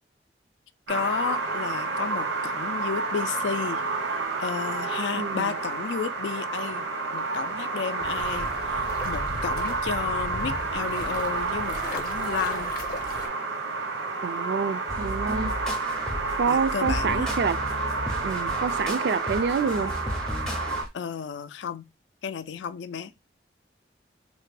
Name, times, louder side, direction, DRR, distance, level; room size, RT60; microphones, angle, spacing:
voice 1, 0.9-3.8 4.4-12.7 16.5-17.3 20.9-21.8 22.2-23.1, left 6 dB, 85° left, 0.3 m, -32 dB
sound 1, 0.9-20.8, right 3 dB, 85° right, 0.8 m, -30 dB
voice 2, 5.2-5.5 14.2-15.5 16.4-17.6 18.2-19.9, right 5 dB, 70° right, 0.3 m, -27 dB
sound 2, 8.0-13.3, left 1 dB, 45° left, 0.6 m, -37 dB
sound 3, 14.9-20.9, equal, 5° left, 0.4 m, -34 dB
3.2 x 2.1 x 3.2 m
head